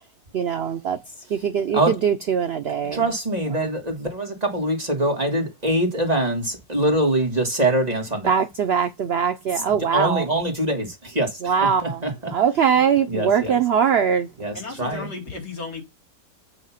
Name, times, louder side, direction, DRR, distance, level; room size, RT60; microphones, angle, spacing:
voice 1, 0.3-1.0 1.3-3.0 3.6-3.7 8.2-10.3 11.4-12.0 12.3-14.3, right 7 dB, 80° right, 0.5 m, -21 dB
voice 2, 2.7-8.3 9.5-12.3 13.1-13.6 14.4-15.1, right 1 dB, 25° right, 1.6 m, -24 dB
voice 3, 14.5-15.8, left 4 dB, 75° left, 2.9 m, -34 dB
8.1 x 2.8 x 5.6 m
omnidirectional pair, 1.8 m